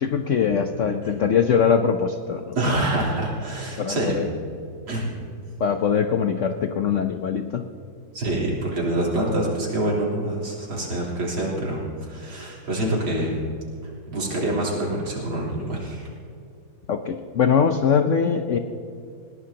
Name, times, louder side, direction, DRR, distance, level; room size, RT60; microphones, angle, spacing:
voice 1, 0.0-2.5 3.8-4.3 5.6-7.6 16.9-18.6, left 7 dB, 85° left, 7 dB, 0.6 m, -22 dB
voice 2, 2.5-4.2 4.9-5.1 8.1-13.3 14.1-16.1, right 1 dB, 80° right, -5 dB, 4.5 m, -26 dB
20.5 x 18.0 x 2.9 m, 2.5 s
omnidirectional pair, 2.2 m